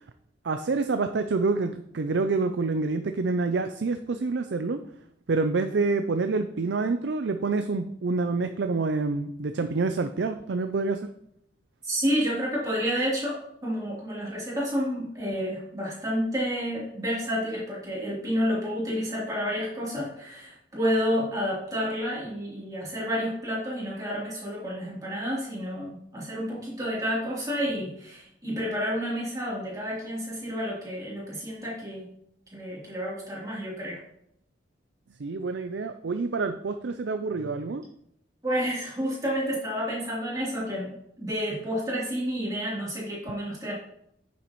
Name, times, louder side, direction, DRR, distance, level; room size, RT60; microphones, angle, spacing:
voice 1, 0.4-4.8 5.3-11.1 35.2-37.8, right 3 dB, 70° right, 8 dB, 0.5 m, -27 dB
voice 2, 11.8-32.1 32.5-34.0 38.4-43.7, equal, 20° right, -6 dB, 3.3 m, -30 dB
9.2 x 7.0 x 3.1 m, 0.74 s
head